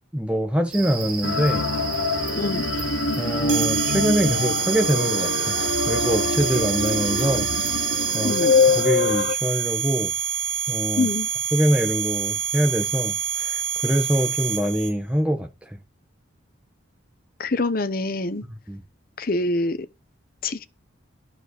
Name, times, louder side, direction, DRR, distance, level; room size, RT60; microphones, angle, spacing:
voice 1, 0.1-1.7 3.2-5.5 5.9-7.5 8.1-8.4 8.7-10.1 10.7-11.1 11.5-15.5 18.7-18.8, right 1 dB, 5° right, 1.3 m, -24 dB
sound 1, 0.7-8.8, right 5 dB, 45° right, 2.2 m, -33 dB
sound 2, 1.2-9.3, left 4 dB, 70° left, 0.9 m, -24 dB
sound 3, 3.5-14.9, right 8 dB, 80° right, 2.7 m, -27 dB
voice 2, 8.2-8.6 11.0-11.3 17.4-18.4 19.2-19.8 20.4-20.7, left 2 dB, 45° left, 0.8 m, -25 dB
12.0 x 5.3 x 6.7 m
head